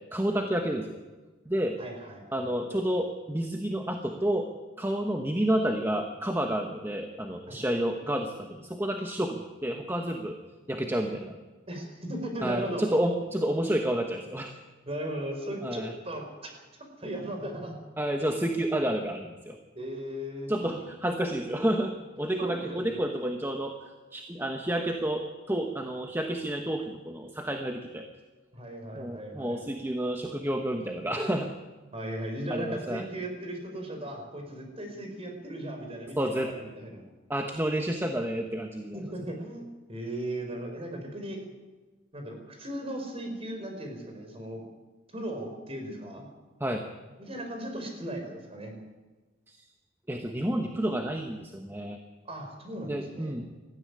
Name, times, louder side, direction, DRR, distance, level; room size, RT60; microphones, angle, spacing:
voice 1, 0.1-1.0 1.5-1.8 2.3-4.5 4.8-10.4 10.7-11.4 12.4-14.6 15.6-15.9 18.0-19.6 20.5-23.8 24.1-28.1 28.9-31.5 32.5-33.0 36.2-36.5 37.3-39.0 46.6-46.8 49.5-49.6 50.1-52.0 52.9-53.5, right 1 dB, 10° right, 4 dB, 1.2 m, -30 dB
voice 2, 1.8-2.5 7.5-7.6 11.7-12.8 14.8-16.6 17.0-17.8 19.7-20.5 22.4-23.1 28.5-29.6 31.9-37.0 38.9-41.4 42.1-44.6 45.1-46.3 47.2-48.7 52.2-53.3, right 1 dB, 30° right, 3 dB, 4.9 m, -37 dB
19.0 x 14.0 x 9.7 m, 1.3 s
head